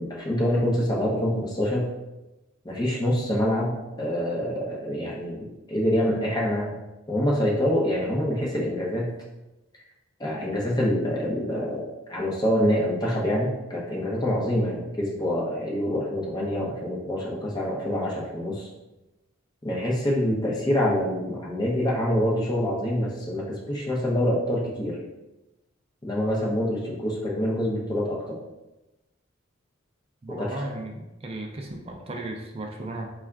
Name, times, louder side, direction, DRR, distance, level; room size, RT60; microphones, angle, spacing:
voice 1, 0.0-1.9 2.6-6.8 7.1-9.1 10.2-11.8 12.1-18.7 19.6-25.0 26.0-28.4 30.3-30.6, equal, 20° left, -3 dB, 0.6 m, -26 dB
voice 2, 30.2-33.1, right 2 dB, 25° right, 2 dB, 0.3 m, -35 dB
4.1 x 2.3 x 3.4 m, 1.0 s
head